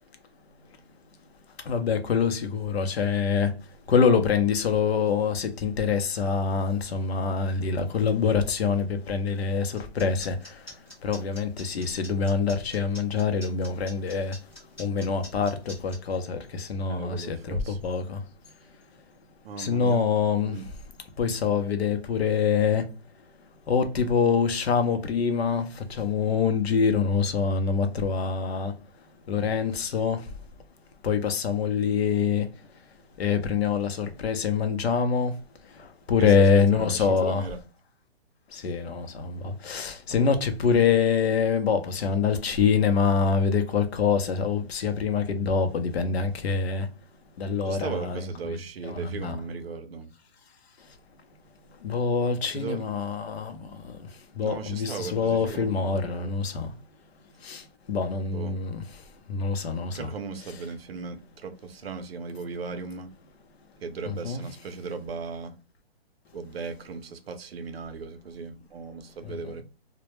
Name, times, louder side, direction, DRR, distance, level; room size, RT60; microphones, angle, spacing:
voice 1, 1.7-3.5 3.9-10.4 11.0-14.3 14.8-18.2 19.6-20.6 21.2-22.8 23.7-28.7 29.3-30.2 31.0-32.5 33.2-35.3 36.1-37.5 38.5-46.9 47.4-49.4 51.8-53.6 54.4-56.7 57.4-57.6 57.9-58.8 59.3-60.1 64.1-64.4 69.4-69.5, left 6 dB, 75° left, 0.6 m, -25 dB
sound 1, 9.8-16.0, left 1 dB, 10° left, 0.7 m, -45 dB
voice 2, 16.9-17.8 19.4-20.0 20.4-20.6 36.2-37.6 40.1-40.4 47.6-50.1 52.5-52.9 54.4-56.3 58.3-58.6 59.9-63.1 63.8-65.5 66.3-69.6, right 4 dB, 70° right, 0.6 m, -37 dB
2.1 x 2.0 x 3.0 m
hypercardioid pair, 175°, 31 cm